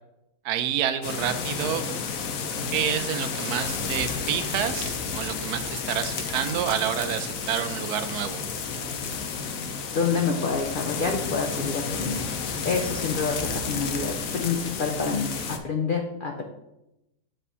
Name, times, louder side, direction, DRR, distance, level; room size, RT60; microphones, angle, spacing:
voice 1, 0.4-1.8 2.7-8.4, right 9 dB, 75° right, 8 dB, 1.1 m, -28 dB
sound 1, 1.0-15.6, left 5 dB, 65° left, 1.1 m, -31 dB
voice 2, 9.9-12.2 12.6-16.4, left 5 dB, 85° left, 3 dB, 0.4 m, -27 dB
7.5 x 3.3 x 5.5 m, 0.91 s
omnidirectional pair, 1.7 m